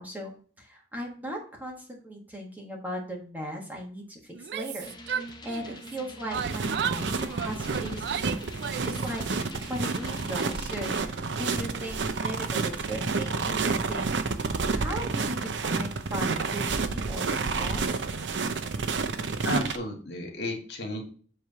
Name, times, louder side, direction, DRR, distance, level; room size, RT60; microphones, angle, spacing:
voice 1, 0.0-18.0, right 1 dB, 10° right, -1 dB, 1.4 m, -38 dB
Yell, 4.3-6.0 6.3-9.1, right 8 dB, 65° right, 0.3 m, -34 dB
sound 1, 4.8-11.0, left 2 dB, 25° left, 0.7 m, -46 dB
sound 2, 6.3-19.8, right 4 dB, 85° right, 0.7 m, -30 dB
voice 2, 19.4-21.0, left 1 dB, 70° left, 1 dB, 1.9 m, -33 dB
7.7 x 3.3 x 5.5 m, 0.43 s
head